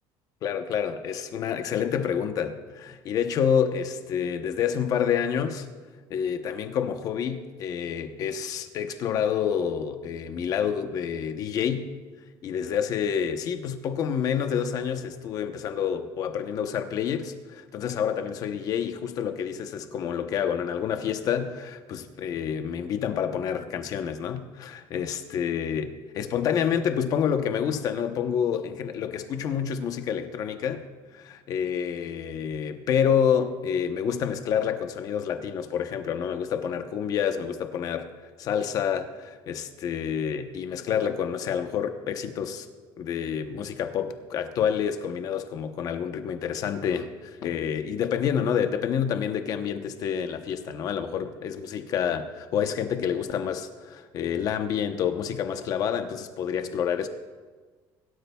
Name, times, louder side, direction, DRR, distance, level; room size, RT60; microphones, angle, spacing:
voice 1, 0.4-5.7 6.1-11.9 12.4-30.8 31.1-38.1 38.4-42.7 43.0-57.1, left 8 dB, 40° left, 8 dB, 0.9 m, -28 dB
22.0 x 12.5 x 2.3 m, 1.4 s
cardioid pair, 170°, 9 cm